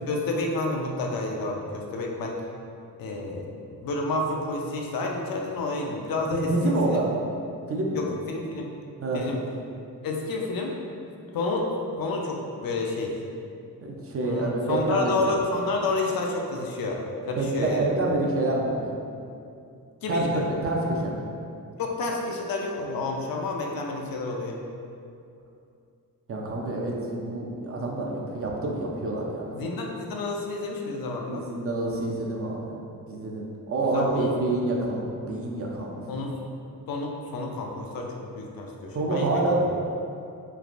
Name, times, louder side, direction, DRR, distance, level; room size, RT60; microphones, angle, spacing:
voice 1, 0.1-2.4 3.0-7.0 7.9-8.7 9.1-9.4 10.0-10.8 11.3-11.7 12.0-13.1 14.2-17.9 20.0-20.4 21.8-24.6 29.5-31.4 33.9-34.5 36.1-36.4 36.9-39.6, left 2 dB, 75° left, 0 dB, 0.5 m, -30 dB
voice 2, 6.2-7.1 7.7-8.0 9.0-9.5 13.8-15.1 17.4-18.9 20.1-21.2 26.3-29.5 31.3-32.7 33.1-36.0 38.9-39.7, right 2 dB, 40° right, -2 dB, 0.5 m, -27 dB
3.3 x 2.4 x 2.4 m, 2.5 s
cardioid pair, 90°, 36 cm